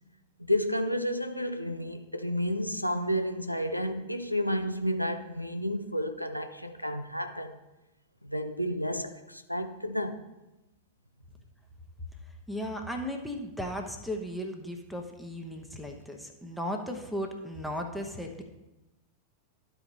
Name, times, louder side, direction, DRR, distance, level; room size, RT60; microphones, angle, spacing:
voice 1, 0.4-7.6 8.2-10.2, equal, 90° left, 0.6 m, -31 dB
voice 2, 12.5-18.4, equal, ahead, 1.0 m, -36 dB
11.5 x 4.7 x 3.9 m
figure-of-eight pair, 90°, 0 cm